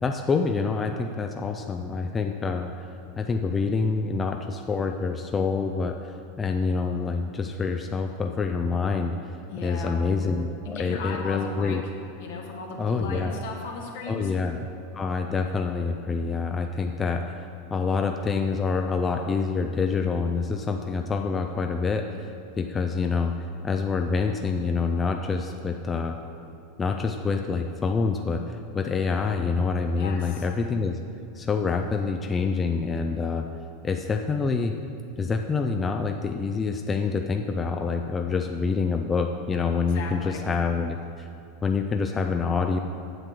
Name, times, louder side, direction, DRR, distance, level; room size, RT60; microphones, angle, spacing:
voice 1, 0.0-9.1 9.6-11.8 12.8-13.4 14.1-14.6 14.9-23.4 23.6-26.2 26.8-31.0 31.3-33.5 33.8-34.8 35.2-41.3 41.6-42.8, left 4 dB, 20° left, 4 dB, 0.5 m, -27 dB
voice 2, 9.5-10.0 10.6-11.8 12.2-14.3 30.0-30.4 39.9-40.4, left 4 dB, 70° left, 0 dB, 1.7 m, -36 dB
8.0 x 7.5 x 5.9 m, 2.7 s
hypercardioid pair, 95°, 0 cm